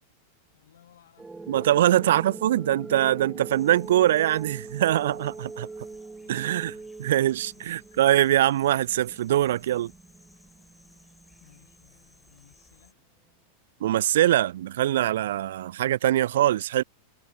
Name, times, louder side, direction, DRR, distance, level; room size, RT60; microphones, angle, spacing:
voice 1, 0.5-2.2 5.8-7.1 7.5-8.0 11.4-13.0, left 10 dB, 60° left, 7.8 m, -61 dB
sound 1, 1.2-12.2, right 3 dB, 10° right, 1.4 m, -43 dB
voice 2, 1.5-5.7 6.3-6.7 7.0-9.9 13.8-16.8, right 13 dB, 60° right, 0.4 m, -23 dB
sound 2, 3.5-12.9, left 2 dB, 5° left, 3.4 m, -59 dB
figure-of-eight pair, 90°, 0 cm